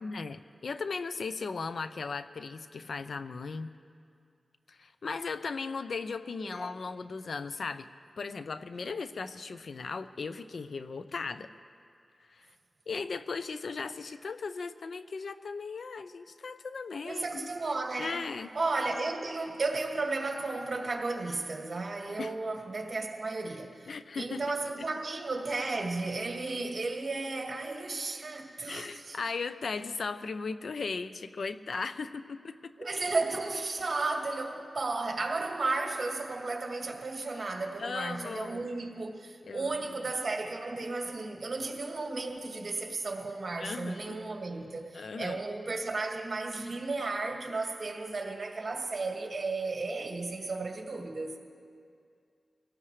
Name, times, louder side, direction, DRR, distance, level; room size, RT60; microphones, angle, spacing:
voice 1, 0.0-3.7 4.7-7.9 8.2-11.5 12.3-12.5 12.9-17.5 18.0-18.5 22.2-22.3 23.9-24.4 28.7-32.7 37.3-37.4 37.8-38.7 39.5-39.8 43.6-44.2 44.9-45.4, left 4 dB, 70° left, 0.6 m, -37 dB
voice 2, 17.0-18.2 18.5-29.2 32.8-51.3, right 3 dB, 50° right, 2.0 m, -34 dB
24.0 x 18.0 x 3.3 m
wide cardioid pair, 100°, 0 cm